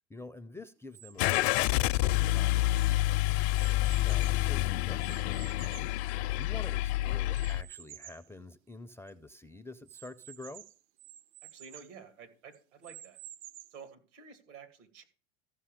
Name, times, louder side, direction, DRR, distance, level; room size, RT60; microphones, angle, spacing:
voice 1, 0.1-2.6 4.0-10.6, left 2 dB, 5° left, 0.4 m, -48 dB
sound 1, 0.9-1.9 2.5-4.5 5.0-6.7 7.3-8.3 8.8-8.9 9.1-9.2 9.9-12.0 12.5-13.9, right 13 dB, 65° right, 0.8 m, -51 dB
Car / Engine starting, 1.2-7.6, left 17 dB, 60° left, 0.6 m, -28 dB
voice 2, 11.5-13.2 13.7-15.0, right 6 dB, 80° right, 2.6 m, -51 dB
14.5 x 5.5 x 5.0 m
hypercardioid pair, 100°, 36 cm